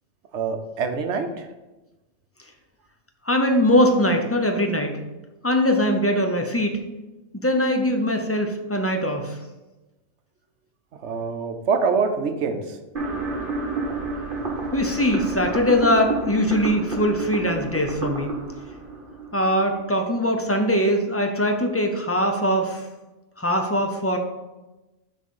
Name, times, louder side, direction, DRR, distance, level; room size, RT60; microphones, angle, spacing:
voice 1, 0.3-1.5 11.0-12.8, right 5 dB, 70° right, 7 dB, 1.0 m, -25 dB
voice 2, 3.3-5.0 5.4-6.8 7.3-9.4 14.7-18.4 19.3-22.8 23.4-24.2, equal, 20° left, 4 dB, 0.4 m, -21 dB
sound 1, 13.0-20.0, right 3 dB, 45° right, 1.3 m, -30 dB
6.2 x 4.0 x 5.5 m, 1.1 s
omnidirectional pair, 1.2 m